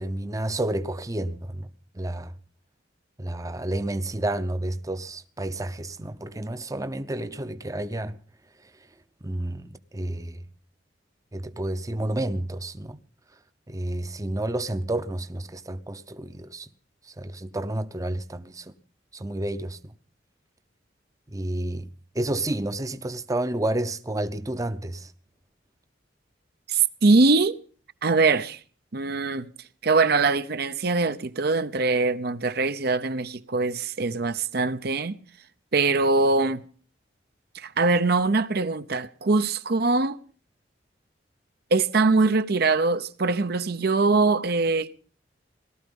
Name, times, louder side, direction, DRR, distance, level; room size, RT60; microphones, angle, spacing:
voice 1, 0.0-1.7 1.9-2.3 3.2-8.2 9.2-10.4 11.3-13.0 13.7-16.7 17.1-18.7 19.1-19.9 21.3-21.9 22.1-25.1, right 1 dB, 20° right, 0.7 m, -30 dB
voice 2, 26.7-27.6 28.0-28.6 28.9-29.5 29.8-35.2 35.7-36.6 37.5-40.2 41.7-44.9, right 3 dB, 60° right, 0.7 m, -22 dB
18.5 x 13.0 x 5.3 m
head